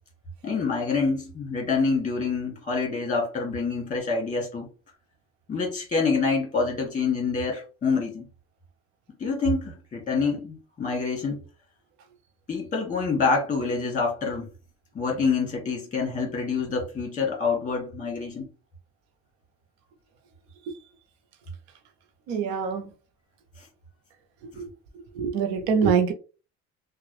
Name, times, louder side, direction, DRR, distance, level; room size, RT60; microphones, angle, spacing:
voice 1, 0.4-4.7 5.5-8.2 9.2-11.4 12.5-14.5 15.0-18.5 23.6-23.7, left 4 dB, 25° left, 1.9 m, -26 dB
voice 2, 22.3-22.9 24.4-24.7 25.1-26.1, right 6 dB, 85° right, 0.8 m, -24 dB
3.2 x 2.5 x 3.3 m
supercardioid pair, 85°, 32 cm